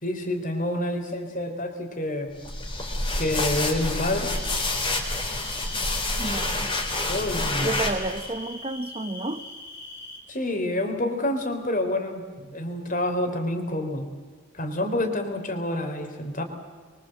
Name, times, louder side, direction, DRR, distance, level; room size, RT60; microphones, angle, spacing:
voice 1, 0.0-2.3 3.2-4.3 7.1-7.7 10.3-12.2 12.5-14.1 14.5-16.4, left 1 dB, 40° left, 5 dB, 3.6 m, -28 dB
sound 1, 2.4-8.3, left 2 dB, 25° left, 3.7 m, -28 dB
sound 2, 4.2-10.2, left 2 dB, 55° left, 4.8 m, -42 dB
voice 2, 6.2-6.7 7.6-9.5 12.4-12.6, right 2 dB, 25° right, 11 dB, 1.0 m, -31 dB
25.5 x 23.5 x 7.8 m, 1.5 s
head